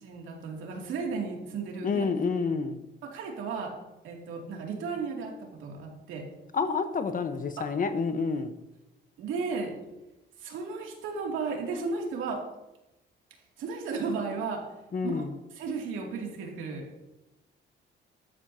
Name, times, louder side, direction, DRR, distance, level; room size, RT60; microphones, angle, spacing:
voice 1, 0.0-2.0 3.0-3.7 4.0-6.3 7.6-7.7 9.2-9.7 10.4-12.4 13.6-14.6 15.0-15.2 15.6-16.9, right 4 dB, 90° right, 0 dB, 2.7 m, -34 dB
voice 2, 1.8-2.8 6.5-8.5 14.9-15.4, left 4 dB, 45° left, 9 dB, 1.2 m, -29 dB
14.0 x 12.0 x 2.9 m, 0.96 s
cardioid pair, 90°, 20 cm